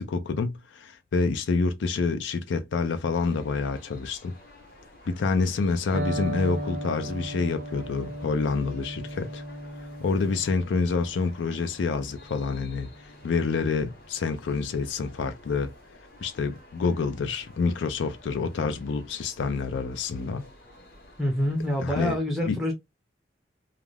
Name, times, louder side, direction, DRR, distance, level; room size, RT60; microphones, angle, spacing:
voice 1, 0.0-4.3 5.1-9.4 10.0-12.9 13.2-15.7 16.2-20.5 21.8-22.1 22.4-22.6, left 4 dB, 75° left, 0.4 m, -27 dB
sound 1, 3.1-22.2, left 1 dB, 50° left, 1.0 m, -52 dB
Electric guitar, 5.9-13.8, right 1 dB, 55° right, 0.6 m, -37 dB
voice 2, 21.2-22.7, left 1 dB, ahead, 0.5 m, -26 dB
2.4 x 2.2 x 3.2 m
head